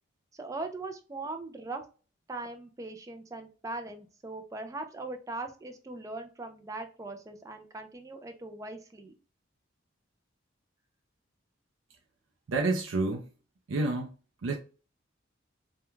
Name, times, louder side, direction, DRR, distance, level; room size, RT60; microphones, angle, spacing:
voice 1, 0.3-1.8 2.3-9.1, right 2 dB, 15° right, 0.3 m, -40 dB
voice 2, 12.5-13.3 13.7-14.1 14.4-14.5, right 3 dB, 80° right, 0.5 m, -29 dB
2.3 x 2.2 x 3.0 m
head